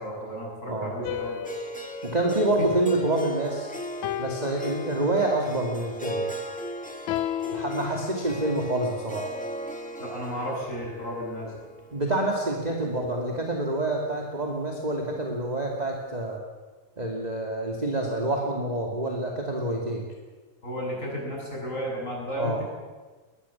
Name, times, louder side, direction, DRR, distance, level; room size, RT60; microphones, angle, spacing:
voice 1, 0.0-1.6 10.0-11.5 20.6-22.6, equal, 20° left, -2 dB, 7.6 m, -33 dB
sound 1, 1.0-3.5 4.0-5.5 7.1-8.8, left 13 dB, 75° left, 1.9 m, -35 dB
Harp, 1.4-13.6, right 1 dB, 5° left, 0.7 m, -38 dB
voice 2, 2.0-3.7 4.2-6.3 7.5-9.3 11.9-16.4 17.0-20.1 22.3-22.6, right 1 dB, 15° right, 0 dB, 2.2 m, -27 dB
21.0 x 21.0 x 7.3 m, 1.3 s
omnidirectional pair, 3.8 m